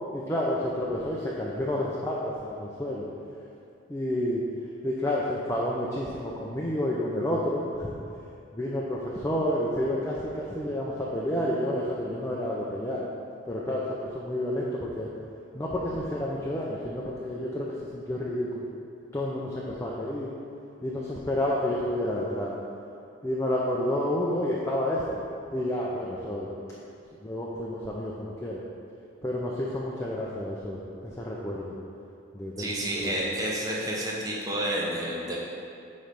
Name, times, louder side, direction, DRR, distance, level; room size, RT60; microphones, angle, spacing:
voice 1, 0.1-3.0 3.9-4.4 4.8-8.0 8.5-13.0 13.5-13.8 14.1-15.1 15.5-18.7 19.1-20.3 20.8-22.5 23.2-25.2 25.5-26.5 27.2-28.6 29.2-31.8 32.3-33.1, left 1 dB, 15° left, -5 dB, 0.5 m, -30 dB
voice 2, 32.6-35.4, right 1 dB, 15° right, -4 dB, 0.9 m, -30 dB
8.8 x 3.2 x 5.2 m, 2.5 s
head